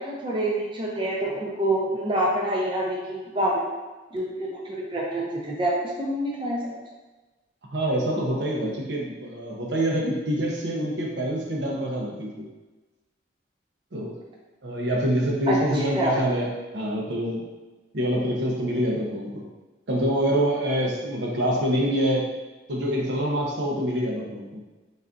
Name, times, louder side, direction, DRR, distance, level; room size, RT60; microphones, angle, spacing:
voice 1, 0.0-3.6 4.1-6.6 15.5-16.2, right 1 dB, 30° right, -3 dB, 0.5 m, -27 dB
voice 2, 7.7-12.5 13.9-14.2 14.6-16.5 16.7-17.4 17.9-19.5 19.9-22.2 22.7-24.6, equal, 75° right, -2 dB, 0.8 m, -26 dB
4.0 x 3.5 x 2.5 m, 1.2 s
head